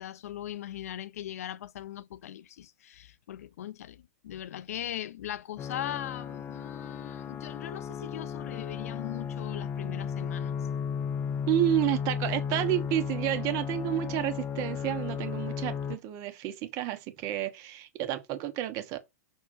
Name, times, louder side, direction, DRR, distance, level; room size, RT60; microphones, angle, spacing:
voice 1, 0.0-10.6, left 11 dB, 75° left, 0.5 m, -40 dB
sound 1, 5.6-16.0, left 7 dB, 25° left, 0.5 m, -34 dB
voice 2, 11.5-19.0, right 13 dB, 40° right, 1.2 m, -30 dB
6.4 x 3.5 x 4.3 m
hypercardioid pair, 125°, 8 cm